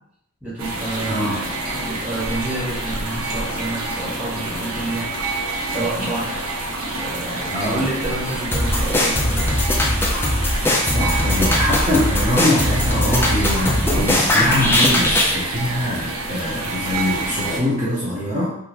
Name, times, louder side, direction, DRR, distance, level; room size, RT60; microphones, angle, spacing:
voice 1, 0.4-6.6 6.9-9.6, right 2 dB, 5° right, -10 dB, 1.4 m, -29 dB
sound 1, 0.6-17.6, right 2 dB, 65° right, 0.7 m, -28 dB
voice 2, 1.0-1.4 7.5-7.8 10.4-18.5, left 1 dB, 30° right, -9 dB, 0.8 m, -23 dB
sound 2, 8.5-15.4, left 1 dB, 10° left, 0.3 m, -20 dB
3.6 x 2.4 x 2.9 m, 0.76 s
head